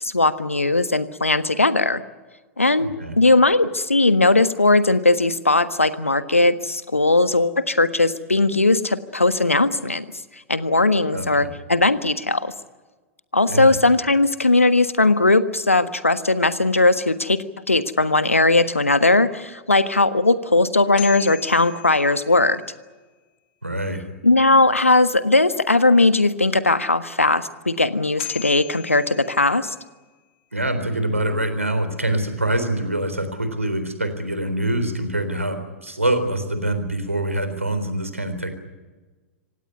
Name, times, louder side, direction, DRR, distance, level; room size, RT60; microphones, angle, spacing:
voice 1, 0.0-2.0 2.6-10.1 10.5-12.5 13.3-17.4 17.7-22.6 24.2-29.7, left 2 dB, 85° left, 12 dB, 1.4 m, -18 dB
voice 2, 2.8-3.2 11.1-11.5 13.5-13.7 23.6-24.0 30.5-38.5, right 1 dB, 85° right, 9 dB, 3.9 m, -25 dB
sound 1, 20.7-22.9 27.8-27.9 28.2-30.1, left 15 dB, 50° left, 2.9 m, -38 dB
26.5 x 17.5 x 9.7 m, 1.3 s
figure-of-eight pair, 100°, 7 cm